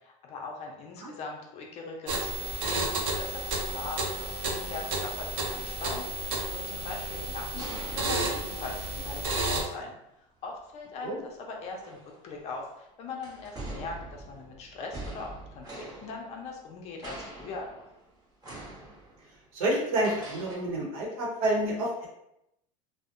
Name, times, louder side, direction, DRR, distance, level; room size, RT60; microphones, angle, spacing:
voice 1, 0.0-9.9 10.4-17.8, left 4 dB, 40° left, 1 dB, 0.5 m, -41 dB
sound 1, 2.1-9.6, right 2 dB, 60° right, 0.6 m, -32 dB
sound 2, 7.0-9.3 10.7-10.9 11.7-12.7 13.2-16.8 17.0-18.1 18.4-19.4 20.0-20.6, right 2 dB, 20° right, 0.8 m, -44 dB
voice 2, 19.5-22.1, right 1 dB, 85° right, -1 dB, 0.9 m, -28 dB
2.6 x 2.1 x 2.5 m, 0.83 s
supercardioid pair, 135°, 17 cm